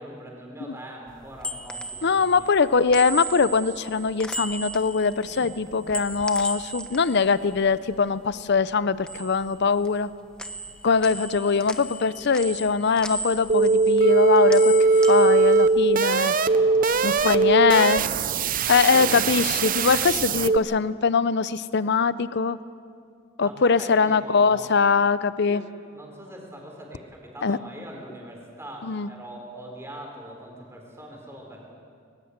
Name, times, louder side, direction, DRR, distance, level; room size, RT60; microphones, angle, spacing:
voice 1, 0.0-2.5 5.2-5.5 16.5-17.7 18.8-19.4 23.4-24.7 25.4-31.7, equal, 15° right, 0 dB, 4.6 m, -42 dB
sound 1, 1.1-8.4 8.7-10.1 10.4-16.4 16.7-18.0, equal, 5° left, 1.0 m, -37 dB
voice 2, 2.0-10.1 10.8-14.7 15.1-16.3 17.0-18.0 18.7-22.6 23.4-25.6 27.4-27.6 28.8-29.1, left 5 dB, 55° left, 16 dB, 0.6 m, -22 dB
sound 2, 13.5-20.6, right 4 dB, 40° right, 0.6 m, -20 dB
21.5 x 20.0 x 8.1 m, 2.2 s
head